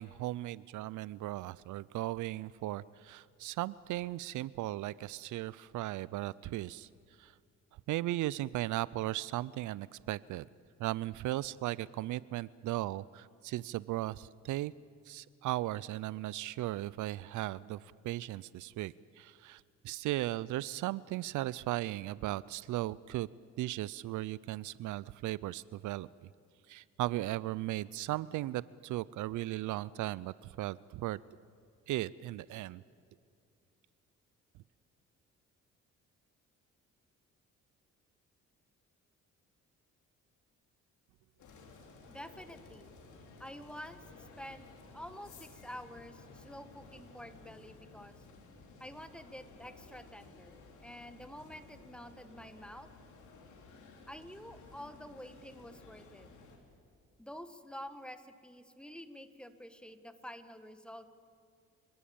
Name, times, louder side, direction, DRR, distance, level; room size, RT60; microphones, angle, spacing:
voice 1, 0.0-6.9 7.2-7.3 7.9-10.5 10.8-14.7 15.1-23.3 23.6-26.1 26.7-31.2 31.9-32.8, right 16 dB, 80° right, 20 dB, 0.5 m, -37 dB
sound 1, 41.4-56.6, left 3 dB, 75° left, 3.4 m, -55 dB
voice 2, 42.1-42.9 43.4-44.7 44.9-48.2 48.8-50.6 50.8-52.9 54.1-56.3 57.2-61.1, equal, 5° left, 10 dB, 1.4 m, -48 dB
30.0 x 12.5 x 8.7 m, 2.3 s
cardioid pair, 90°, 30 cm